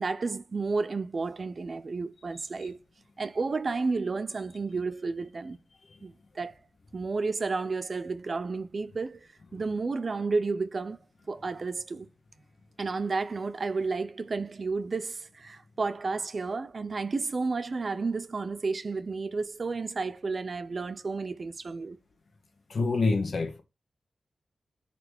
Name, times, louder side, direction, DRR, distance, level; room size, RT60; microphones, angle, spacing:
voice 1, 0.0-2.8 3.2-5.6 6.0-6.6 6.9-11.0 11.3-12.1 12.8-22.0, right 4 dB, 40° right, 0.5 m, -32 dB
voice 2, 22.7-23.6, left 3 dB, 50° left, 1.6 m, -26 dB
10.5 x 4.2 x 3.4 m
wide cardioid pair, 180°, 0 cm